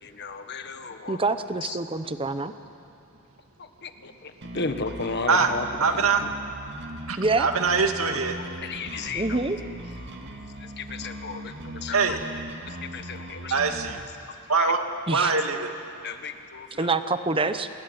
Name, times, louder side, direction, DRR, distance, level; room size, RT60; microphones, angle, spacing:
voice 1, 0.0-1.2 1.6-1.8 3.6-6.3 8.4-9.4 10.6-11.4 11.8-12.2 12.7-13.5 14.6-14.7 16.0-16.9, left 4 dB, 50° left, 7 dB, 1.6 m, -34 dB
voice 2, 1.1-2.5 7.2-7.5 9.1-9.6 15.1-15.3 16.8-17.7, right 3 dB, 25° right, 10 dB, 1.0 m, -26 dB
sound 1, 4.4-14.0, right 1 dB, 55° right, 2.1 m, -39 dB
voice 3, 5.8-6.2 7.1-8.4 11.9-12.2 13.5-14.0 14.5-14.8 15.1-15.7, right 5 dB, 85° right, 5 dB, 2.1 m, -23 dB
27.5 x 20.5 x 9.0 m, 2.5 s
head